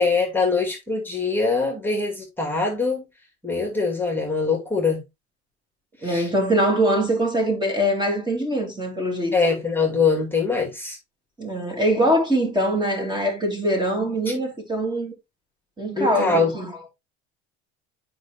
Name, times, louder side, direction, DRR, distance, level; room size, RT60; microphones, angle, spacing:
voice 1, 0.0-3.1 3.4-5.0 6.0-6.3 9.3-11.0 16.0-16.5, left 4 dB, 5° left, 2.4 m, -23 dB
voice 2, 6.0-9.4 11.4-15.1 15.8-16.7, equal, 15° right, 2.7 m, -23 dB
8.1 x 5.2 x 3.0 m
hypercardioid pair, 80°, 34 cm